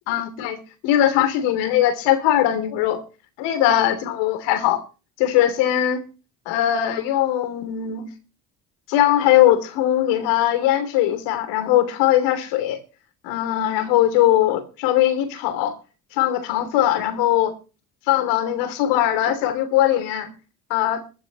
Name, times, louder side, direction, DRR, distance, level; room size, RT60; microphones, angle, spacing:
voice 1, 0.1-0.6 0.8-3.0 3.4-4.8 5.2-6.0 6.5-8.1 8.9-12.8 13.2-15.8 16.1-17.5 18.1-20.3 20.7-21.0, left 12 dB, 75° left, 3.0 m, -20 dB
22.0 x 12.0 x 3.0 m
hypercardioid pair, 55°, 43 cm